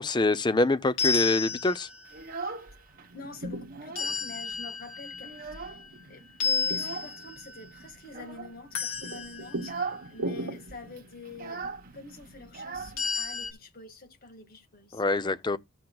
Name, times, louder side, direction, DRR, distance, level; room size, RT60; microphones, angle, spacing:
voice 1, 0.0-1.9 14.9-15.6, left 2 dB, 20° left, 0.5 m, -25 dB
sound 1, 1.0-2.1 4.0-6.0 6.4-7.6 8.8-9.8 13.0-13.5, left 6 dB, 90° left, 1.7 m, -32 dB
Child speech kid speaking, 2.1-3.1 3.4-4.2 4.5-4.6 5.0-6.1 6.7-7.2 8.0-8.6 9.0-9.2 9.6-10.1 10.4-10.5 10.7-13.5, right 4 dB, 45° right, 1.4 m, -39 dB
sound 2, 2.9-12.7, right 2 dB, 80° right, 1.1 m, -42 dB
voice 2, 3.1-5.8 6.1-15.0, left 3 dB, 45° left, 1.7 m, -46 dB
13.5 x 7.7 x 2.3 m
head